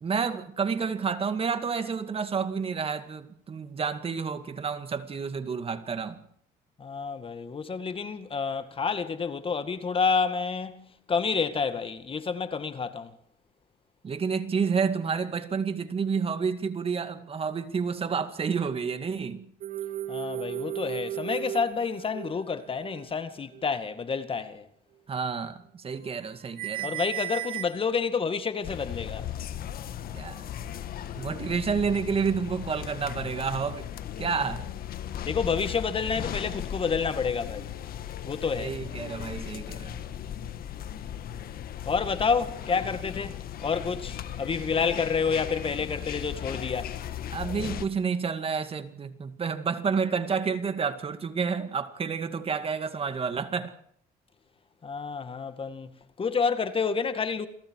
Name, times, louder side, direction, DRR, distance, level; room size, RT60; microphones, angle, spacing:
voice 1, 0.0-6.2 14.0-19.5 25.1-27.0 30.1-30.4 31.1-33.9 34.2-34.7 38.6-40.0 47.3-53.7, right 5 dB, 35° right, 2.2 m, -30 dB
voice 2, 6.8-13.1 20.1-24.6 26.8-29.3 35.3-37.7 38.2-38.7 41.9-43.3 43.6-46.9 54.8-55.9 56.2-57.5, left 5 dB, 30° left, 2.0 m, -29 dB
sound 1, 19.6-22.4 22.7-23.0 23.5-23.7 24.2-24.3 26.1-26.3 26.6-27.8, right 13 dB, 60° right, 2.9 m, -35 dB
sound 2, 28.6-47.9, left 10 dB, 60° left, 1.8 m, -37 dB
29.0 x 22.0 x 4.8 m
cardioid pair, 110°, 17 cm